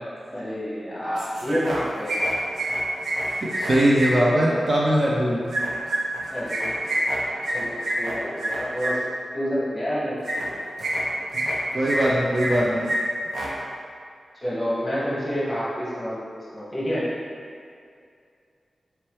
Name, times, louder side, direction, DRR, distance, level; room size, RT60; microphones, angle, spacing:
voice 1, 0.3-2.2 6.3-7.0 7.5-9.0 9.3-10.5 14.4-16.2 16.5-17.0, equal, 15° left, -9 dB, 1.2 m, -28 dB
sound 1, 1.2-1.8 2.1-4.1 5.5-8.9 10.2-10.5 10.8-11.6 11.8-12.6 12.9-13.0 13.3-13.5, right 1 dB, 85° right, 0.6 m, -27 dB
voice 2, 3.2-5.5 11.3-11.5 11.7-12.9, right 1 dB, 35° right, -5 dB, 0.4 m, -21 dB
4.3 x 3.1 x 3.0 m, 2.3 s
wide cardioid pair, 175°, 0 cm